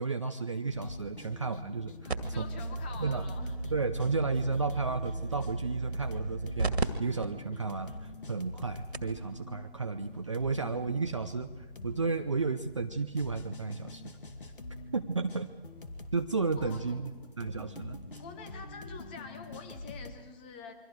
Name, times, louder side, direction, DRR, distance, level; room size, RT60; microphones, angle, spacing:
voice 1, 0.0-2.4 3.0-3.3 3.7-14.1 14.9-15.5 16.1-18.0, right 4 dB, 30° right, 7 dB, 0.6 m, -33 dB
sound 1, 0.7-20.1, left 2 dB, 55° left, 2.2 m, -45 dB
voice 2, 2.0-3.6 16.6-17.0 18.2-20.7, left 4 dB, 10° left, 7 dB, 0.9 m, -46 dB
sound 2, 2.1-6.9 7.2-7.3 8.0-8.1 8.6-8.7 8.9-9.2 10.4-10.5, right 3 dB, 85° right, 2.1 m, -35 dB
28.5 x 24.0 x 4.7 m, 1.3 s
figure-of-eight pair, 160°, 31 cm